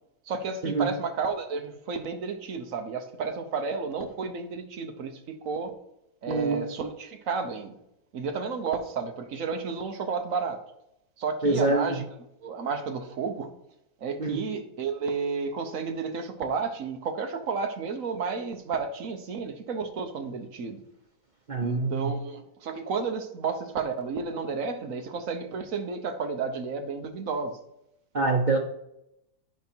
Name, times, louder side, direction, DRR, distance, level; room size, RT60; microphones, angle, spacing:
voice 1, 0.3-5.7 6.2-7.8 8.1-10.6 11.2-12.0 12.4-13.5 14.0-20.8 21.6-27.6, right 5 dB, 55° right, 6 dB, 1.1 m, -32 dB
voice 2, 6.3-6.6 11.4-11.9 14.2-14.4 21.5-22.2 28.1-28.6, right 3 dB, 80° right, 1 dB, 0.4 m, -25 dB
9.6 x 5.2 x 4.5 m, 0.82 s
omnidirectional pair, 2.0 m